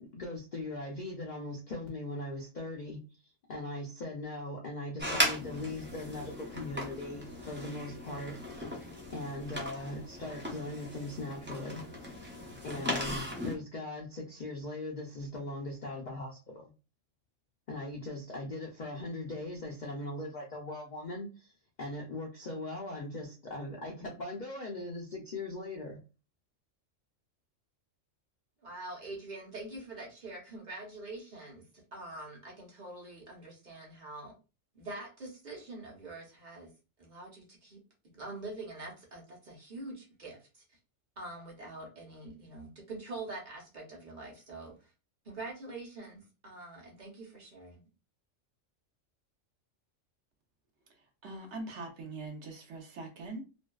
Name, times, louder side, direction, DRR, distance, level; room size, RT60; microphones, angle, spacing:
voice 1, 0.1-3.0 3.5-8.6 9.1-11.8 12.6-16.7 17.7-26.0, left 2 dB, 60° left, -2 dB, 0.5 m, -40 dB
sound 1, 5.0-13.5, equal, 15° right, 0.4 m, -37 dB
voice 2, 28.6-31.6 31.9-34.3 34.7-36.7 37.0-37.8 38.1-40.8 41.2-44.9 45.2-47.8, right 2 dB, 40° right, -1 dB, 0.9 m, -45 dB
voice 3, 51.2-53.4, right 2 dB, 70° right, 3 dB, 0.9 m, -42 dB
2.6 x 2.2 x 2.3 m, 0.32 s
omnidirectional pair, 1.3 m